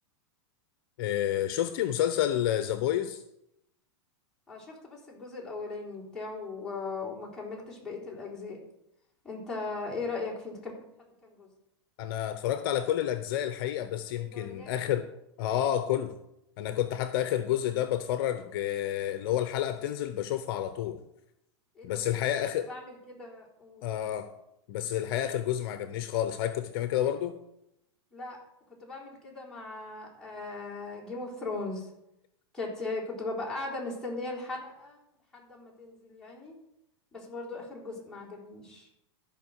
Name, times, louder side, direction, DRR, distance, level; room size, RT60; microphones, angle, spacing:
voice 1, 1.0-3.2 12.0-15.1 15.4-16.1 16.6-21.0 21.8-22.7 23.8-24.3 24.7-27.4, left 11 dB, 55° left, 10 dB, 0.7 m, -29 dB
voice 2, 4.5-8.6 9.2-10.8 11.2-11.5 14.2-14.9 21.8-22.2 22.7-23.9 28.1-28.4 28.8-31.9 32.5-35.0 35.3-36.5 37.1-38.9, left 3 dB, 5° left, -6 dB, 3.8 m, -38 dB
14.0 x 5.4 x 6.4 m, 0.84 s
supercardioid pair, 150°, 15 cm